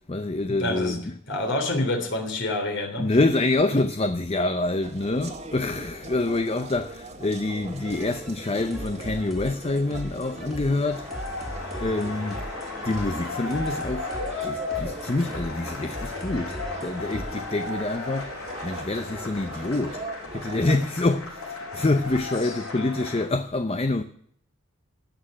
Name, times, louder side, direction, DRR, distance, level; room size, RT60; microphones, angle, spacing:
voice 1, 0.0-1.1 3.0-11.1 11.8-12.4 12.8-14.1 14.4-18.4 18.6-20.1 20.3-24.0, left 2 dB, 30° left, 0.6 m, -26 dB
voice 2, 0.6-1.0 1.3-3.2 3.7-3.8 22.4-22.6, left 1 dB, 55° left, 3.5 m, -27 dB
sound 1, 4.8-20.8, right 2 dB, 30° right, 1.7 m, -41 dB
sound 2, 7.6-17.4, equal, ahead, 2.1 m, -39 dB
sound 3, 10.9-23.2, left 3 dB, 80° left, 6.4 m, -35 dB
16.5 x 6.6 x 9.8 m
head